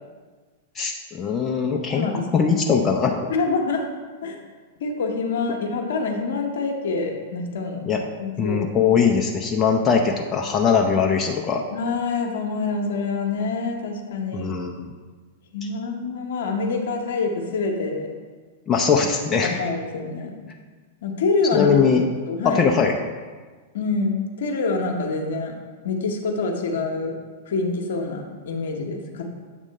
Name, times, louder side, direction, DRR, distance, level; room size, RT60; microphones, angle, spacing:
voice 1, 0.8-2.1 2.3-3.2 7.9-8.0 8.4-11.6 14.3-14.9 18.7-19.6 21.5-22.0 22.4-22.9, left 6 dB, 20° left, 1 dB, 0.5 m, -21 dB
voice 2, 1.9-2.2 3.3-3.9 4.2-4.4 4.8-7.8 8.2-8.6 11.7-14.5 15.5-18.1 19.4-20.4 21.0-21.7 22.3-22.6 23.7-25.5 25.8-27.1 27.5-29.3, left 3 dB, 60° left, 2 dB, 0.9 m, -26 dB
7.6 x 3.6 x 5.2 m, 1.4 s
figure-of-eight pair, 95°, 0 cm